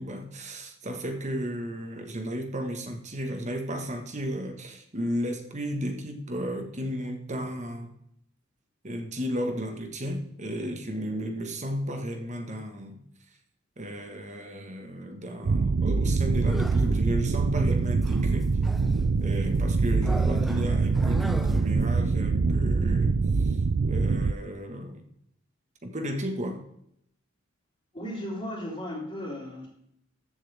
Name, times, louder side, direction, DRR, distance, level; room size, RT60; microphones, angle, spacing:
voice 1, 0.0-7.9 8.8-13.0 13.8-18.6 19.2-23.6 23.9-25.1 25.8-26.6, equal, 35° right, 5 dB, 1.6 m, -34 dB
sound 1, 15.4-24.3, right 4 dB, 55° right, 0.4 m, -24 dB
sound 2, 16.4-17.0 18.0-19.0 20.0-21.8, equal, ahead, 0.6 m, -37 dB
voice 2, 27.9-29.7, left 1 dB, 25° left, -9 dB, 3.5 m, -35 dB
14.5 x 7.8 x 3.5 m, 0.73 s
head